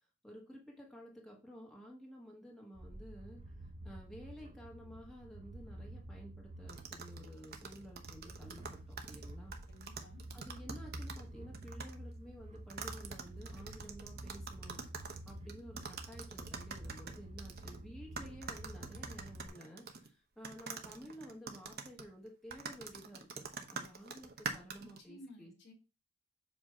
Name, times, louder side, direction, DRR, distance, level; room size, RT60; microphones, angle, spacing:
voice 1, 0.2-3.4 3.8-9.6 10.3-14.8 15.3-23.4 23.7-25.5, equal, ahead, -2 dB, 1.3 m, -52 dB
sound 1, 2.7-19.5, right 1 dB, 30° right, 0.5 m, -49 dB
sound 2, 6.7-11.3 11.5-11.9 12.7-17.8 18.2-20.1 20.4-25.0, right 5 dB, 45° right, 0.9 m, -45 dB
voice 2, 9.7-10.2 24.8-25.7, left 1 dB, 50° left, 2 dB, 1.9 m, -55 dB
7.6 x 2.8 x 5.8 m, 0.31 s
head